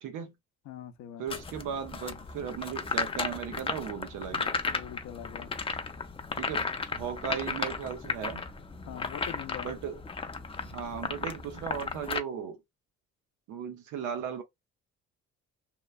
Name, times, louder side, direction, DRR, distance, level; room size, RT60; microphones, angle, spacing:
voice 1, 0.0-0.3 1.2-4.6 6.4-8.4 9.6-10.0 10.7-12.6 13.5-14.4, right 8 dB, 85° right, 0.7 m, -37 dB
voice 2, 0.7-1.2 4.6-5.5 8.9-9.7, left 10 dB, 70° left, 0.6 m, -42 dB
sound 1, 1.3-12.2, left 4 dB, 20° left, 0.4 m, -35 dB
3.0 x 2.1 x 2.4 m
cardioid pair, 90°, 30 cm